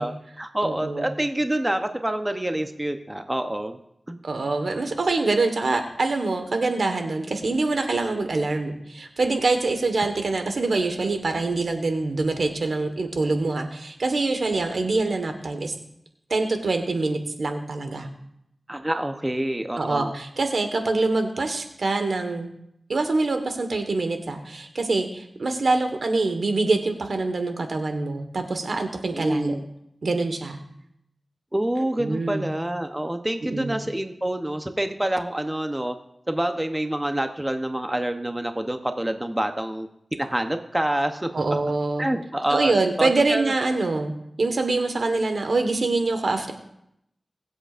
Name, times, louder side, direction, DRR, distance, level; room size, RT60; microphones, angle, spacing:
voice 1, 0.0-3.8 4.1-4.2 18.7-20.1 29.1-29.6 31.5-36.0 36.3-39.9 40.2-41.6 42.0-42.7 43.0-43.5, right 1 dB, 15° right, 7 dB, 0.8 m, -27 dB
voice 2, 0.6-1.1 4.2-15.7 16.3-18.1 19.8-22.5 22.9-29.6 30.0-30.6 32.0-32.5 33.4-33.8 41.3-42.1 42.5-44.1 44.4-46.5, right 3 dB, 80° right, 6 dB, 1.4 m, -25 dB
22.5 x 7.9 x 2.5 m, 0.78 s
wide cardioid pair, 60°, 0 cm